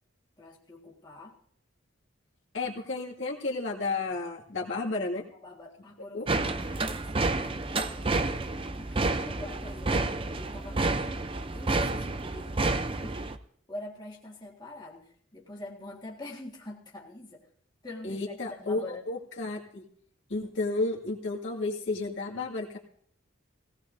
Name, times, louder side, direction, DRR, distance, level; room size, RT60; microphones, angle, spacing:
voice 1, 0.4-1.4 5.4-7.7 8.8-13.2 13.7-17.4 17.8-19.0, left 2 dB, 20° left, -3 dB, 1.8 m, -45 dB
voice 2, 2.5-5.2 6.1-6.3 18.0-19.8 20.3-22.8, left 3 dB, 65° left, -2 dB, 2.2 m, -32 dB
sound 1, 6.3-13.4, right 3 dB, 25° right, 0.6 m, -29 dB
18.0 x 17.5 x 2.7 m, 0.62 s
head